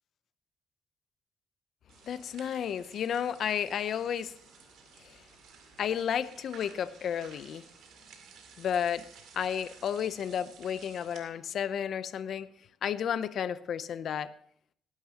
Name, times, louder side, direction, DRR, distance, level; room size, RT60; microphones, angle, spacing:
sound 1, 1.9-11.2, right 6 dB, 80° right, 2.2 m, -54 dB
voice 1, 2.1-4.3 5.0-5.2 5.8-7.6 8.6-9.1 9.3-12.5 12.8-14.3, left 8 dB, 65° left, 0.6 m, -32 dB
18.5 x 10.5 x 2.9 m
cardioid pair, 90°, 0 cm